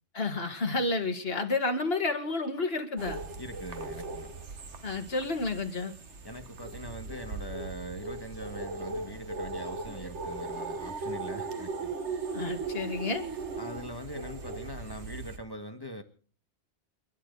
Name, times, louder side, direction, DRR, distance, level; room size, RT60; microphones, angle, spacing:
voice 1, 0.1-3.2 4.8-5.9 12.3-13.2, left 3 dB, 55° left, 5 dB, 2.3 m, -30 dB
sound 1, 3.0-15.4, right 3 dB, 65° right, 1.7 m, -38 dB
voice 2, 3.4-4.3 6.2-12.0 13.6-16.0, equal, 20° left, 6 dB, 1.8 m, -42 dB
29.0 x 11.5 x 4.1 m, 0.42 s
omnidirectional pair, 1.2 m